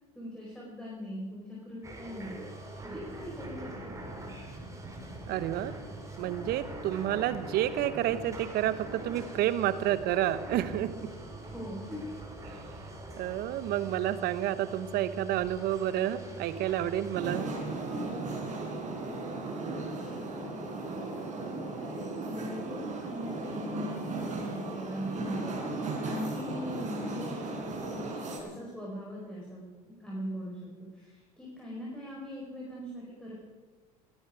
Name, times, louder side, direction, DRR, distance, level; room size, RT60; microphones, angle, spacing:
voice 1, 0.1-2.4 2.8-4.4 11.4-12.0 19.6-21.3 21.8-25.6 26.0-33.3, left 1 dB, 5° left, -5 dB, 4.7 m, -41 dB
sound 1, 1.8-17.2, right 1 dB, 15° right, 4.3 m, -43 dB
voice 2, 5.3-5.7 6.2-11.1 12.4-12.6 13.2-17.5, right 12 dB, 55° right, 14 dB, 1.1 m, -30 dB
sound 2, 17.1-28.4, right 3 dB, 40° right, 4.9 m, -36 dB
21.0 x 13.5 x 4.9 m, 1.4 s
hypercardioid pair, 80°, 19 cm